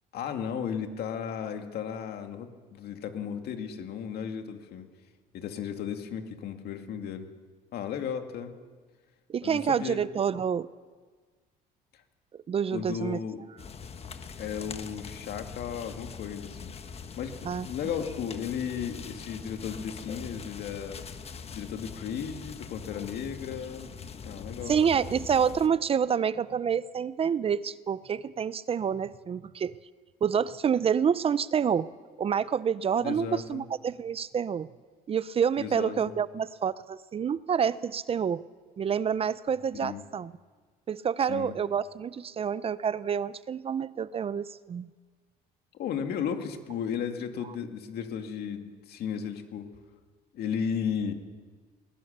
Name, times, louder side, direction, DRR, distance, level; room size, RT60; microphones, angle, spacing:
voice 1, 0.1-4.9 5.3-7.3 7.7-8.5 9.4-10.0 11.9-12.0 12.7-13.4 14.4-21.0 21.5-23.9 24.2-24.8 33.0-33.6 35.6-36.1 39.7-40.0 41.3-41.5 45.7-49.7 50.3-51.1, left 7 dB, 70° left, 5 dB, 2.2 m, -35 dB
voice 2, 9.3-10.7 12.3-13.2 17.4-17.7 24.7-29.8 30.2-31.9 32.2-34.7 35.1-38.4 38.8-40.3 40.9-44.9, right 7 dB, 35° right, 17 dB, 0.5 m, -28 dB
sound 1, 13.6-25.7, left 6 dB, 35° left, 1.3 m, -42 dB
20.5 x 19.5 x 6.7 m, 1.5 s
cardioid pair, 110°, 17 cm